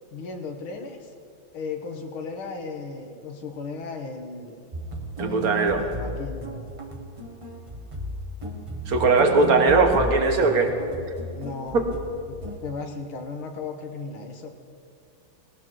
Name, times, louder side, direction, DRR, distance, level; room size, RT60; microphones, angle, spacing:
voice 1, 0.1-1.1 1.5-4.6 5.2-6.5 9.5-9.8 11.3-11.8 12.3-14.5, left 4 dB, 75° left, 3 dB, 2.0 m, -36 dB
sound 1, 4.7-12.6, equal, 35° right, 0.5 m, -34 dB
voice 2, 5.2-5.8 8.9-10.7 11.7-11.9, right 3 dB, 50° right, 5 dB, 1.4 m, -19 dB
18.5 x 18.5 x 3.1 m, 2.4 s
omnidirectional pair, 2.3 m